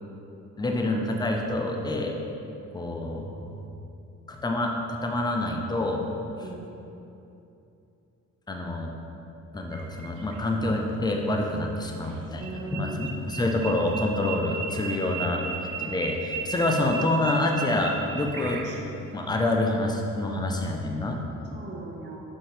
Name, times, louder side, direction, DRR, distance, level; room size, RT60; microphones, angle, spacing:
voice 1, 0.6-2.1 2.7-3.4 4.3-6.0 8.5-8.9 9.5-12.4 12.7-15.4 15.8-18.7 19.1-21.2, left 2 dB, 15° left, 1 dB, 0.6 m, -27 dB
sound 1, 9.7-10.4 12.1-19.0, right 6 dB, 85° right, 0.6 m, -36 dB
voice 2, 12.3-13.2 21.3-22.2, right 4 dB, 35° right, -2 dB, 0.9 m, -39 dB
5.6 x 5.2 x 3.3 m, 2.8 s
cardioid pair, 90°, 30 cm